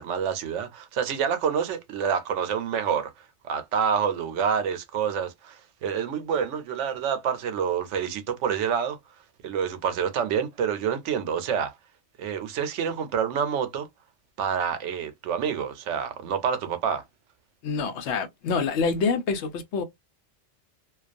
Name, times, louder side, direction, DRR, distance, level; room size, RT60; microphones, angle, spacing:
voice 1, 0.0-3.1 3.4-9.0 9.4-11.7 12.2-13.9 14.4-17.0, right 7 dB, 80° right, 0.9 m, -27 dB
voice 2, 17.6-19.8, left 5 dB, 75° left, 0.9 m, -26 dB
2.3 x 2.2 x 2.5 m
omnidirectional pair, 1.2 m